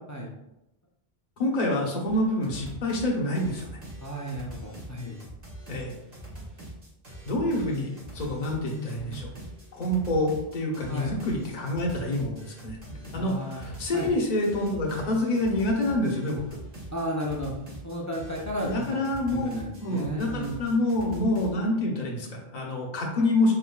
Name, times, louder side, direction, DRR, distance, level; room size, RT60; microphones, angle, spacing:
voice 1, 1.4-3.7 5.7-5.9 7.2-9.3 9.7-16.4 18.6-23.5, left 1 dB, 45° left, -1 dB, 0.9 m, -27 dB
sound 1, 2.1-2.2 2.4-3.1 3.4-21.5, right 1 dB, 40° right, 1.3 m, -43 dB
voice 2, 4.0-5.2 8.3-9.3 10.9-11.2 13.2-13.7 13.9-14.1 16.9-20.6, equal, 25° left, -2 dB, 0.4 m, -34 dB
4.2 x 3.9 x 2.2 m, 0.89 s
omnidirectional pair, 1.1 m